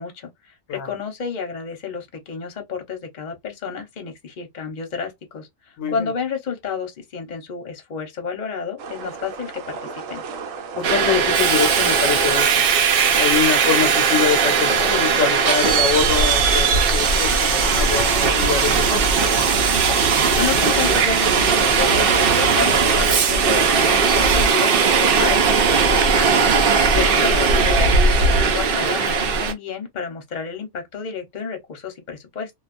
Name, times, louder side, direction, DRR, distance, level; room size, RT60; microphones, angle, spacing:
voice 1, 0.0-10.2 20.4-26.5 26.9-32.5, left 6 dB, 40° left, 0.8 m, -30 dB
voice 2, 5.8-6.1 10.7-12.7 13.1-19.1, left 7 dB, 80° left, 1.0 m, -24 dB
sound 1, 8.8-16.1, right 5 dB, 85° right, 1.0 m, -35 dB
Subway metro underground, 10.8-29.5, right 5 dB, 55° right, 0.7 m, -18 dB
2.3 x 2.3 x 2.4 m
omnidirectional pair, 1.4 m